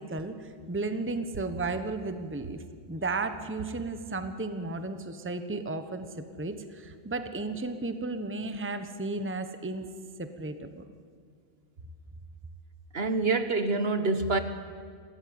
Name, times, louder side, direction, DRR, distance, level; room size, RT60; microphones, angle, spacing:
voice 1, 0.0-9.9 10.2-10.8, right 3 dB, 10° right, 9 dB, 1.1 m, -34 dB
voice 2, 12.9-14.4, right 3 dB, 55° right, 9 dB, 1.4 m, -26 dB
29.0 x 14.0 x 9.6 m, 2.1 s
omnidirectional pair, 1.3 m